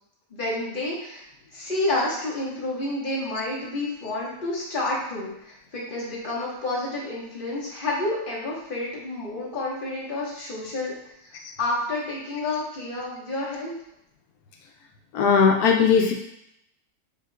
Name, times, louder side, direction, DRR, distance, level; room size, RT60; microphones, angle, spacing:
voice 1, 0.3-1.2 1.5-10.9 11.2-13.7, left 2 dB, 35° left, -6 dB, 1.4 m, -29 dB
voice 2, 15.1-16.1, left 6 dB, 85° left, 2 dB, 1.1 m, -18 dB
6.8 x 2.9 x 2.3 m, 0.80 s
omnidirectional pair, 1.6 m